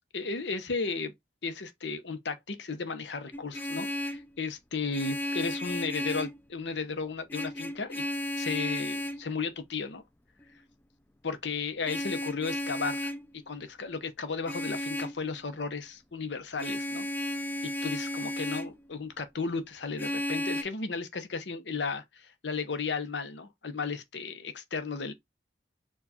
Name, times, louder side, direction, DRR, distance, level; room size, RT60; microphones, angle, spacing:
voice 1, 0.1-1.1 1.4-8.0 8.4-10.0 11.2-17.1 17.6-25.1, left 4 dB, 80° left, 0.8 m, -34 dB
Vehicle horn car horn honking, 3.3-4.3 4.9-6.4 7.3-9.2 11.9-13.3 14.5-15.2 16.6-18.8 20.0-20.6, left 1 dB, 10° left, 0.4 m, -34 dB
4.6 x 2.4 x 4.2 m
head